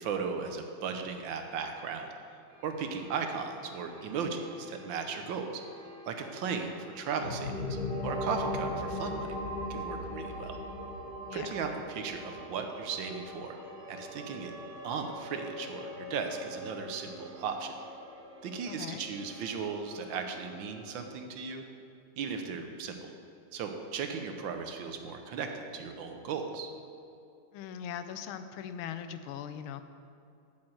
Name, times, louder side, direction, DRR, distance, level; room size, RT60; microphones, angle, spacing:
voice 1, 0.0-2.1 2.6-5.5 6.1-9.4 9.7-10.6 11.3-13.6 13.9-14.5 14.8-17.7 18.4-21.6 22.2-23.1 23.5-26.7, right 5 dB, 70° right, 5 dB, 1.5 m, -36 dB
sound 1, 2.5-21.0, left 1 dB, 45° right, 2.7 m, -49 dB
sound 2, 7.2-16.8, left 1 dB, 30° left, 1.7 m, -39 dB
voice 2, 18.7-19.0 27.5-29.8, left 9 dB, 90° left, 10 dB, 1.5 m, -40 dB
8.6 x 5.9 x 7.8 m, 2.7 s
omnidirectional pair, 2.2 m